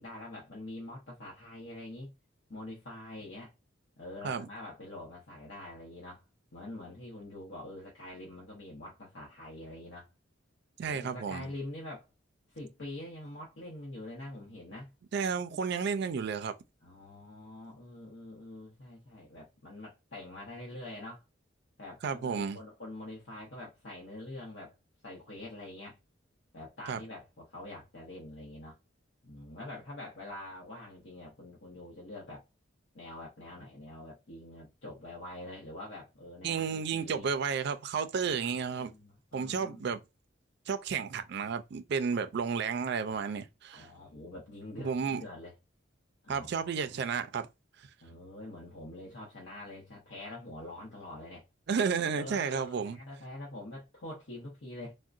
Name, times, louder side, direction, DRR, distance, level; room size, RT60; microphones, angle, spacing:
voice 1, 0.0-2.1 2.5-3.5 4.0-6.2 6.5-10.1 10.8-12.1 12.5-14.9 16.8-21.2 21.8-24.7 25.0-26.0 26.5-28.8 29.2-32.5 32.9-37.3 38.2-39.9 43.7-45.5 46.2-47.0 48.0-51.5 52.1-54.9, left 1 dB, 65° left, 0.9 m, -45 dB
voice 2, 10.8-11.5 15.1-16.5 22.0-22.6 26.9-27.0 36.4-38.9 39.3-40.0 40.7-43.9 44.8-45.2 46.3-47.5 51.7-53.0, right 6 dB, 55° right, 0.4 m, -32 dB
3.7 x 2.1 x 2.4 m
head